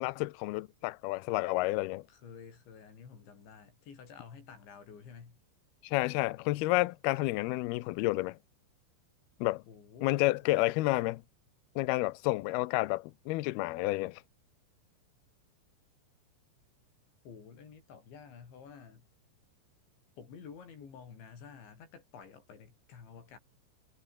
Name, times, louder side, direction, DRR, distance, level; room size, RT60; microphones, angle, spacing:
voice 1, 0.0-2.0 5.8-8.4 9.4-9.6 10.0-11.2 11.8-14.2, left 20 dB, 85° left, 2.2 m, -30 dB
voice 2, 2.1-5.4 9.7-10.4 17.3-19.1 20.2-23.4, left 6 dB, 70° left, 7.6 m, -51 dB
omnidirectional pair, 5.4 m